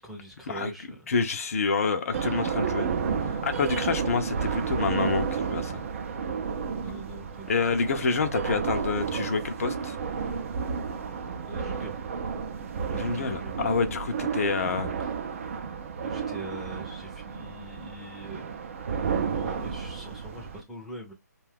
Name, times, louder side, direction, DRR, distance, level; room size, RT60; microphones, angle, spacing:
voice 1, 0.0-1.0 6.8-7.5 11.5-11.9 13.1-13.7 16.0-18.5 19.3-21.1, right 1 dB, ahead, 0.6 m, -43 dB
voice 2, 1.1-2.9 3.2-5.8 7.5-10.0 12.9-14.9, left 4 dB, 50° left, 0.5 m, -28 dB
sound 1, 2.1-20.6, right 6 dB, 45° right, 0.5 m, -32 dB
2.6 x 2.3 x 3.4 m
hypercardioid pair, 150°, 10 cm